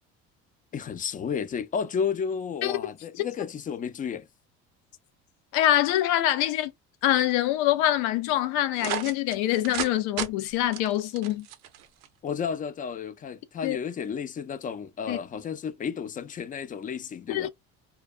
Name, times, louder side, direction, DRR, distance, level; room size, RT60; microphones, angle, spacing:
voice 1, 0.7-4.3 12.2-17.5, left 6 dB, 30° left, 0.4 m, -32 dB
voice 2, 5.5-6.7 7.0-11.5 13.6-13.8 15.1-15.2 17.3-17.5, left 13 dB, 90° left, 0.5 m, -25 dB
sound 1, 8.8-9.9 10.2-10.3 10.7-12.1, right 10 dB, 85° right, 0.6 m, -33 dB
2.3 x 2.2 x 2.4 m
supercardioid pair, 100°, 30 cm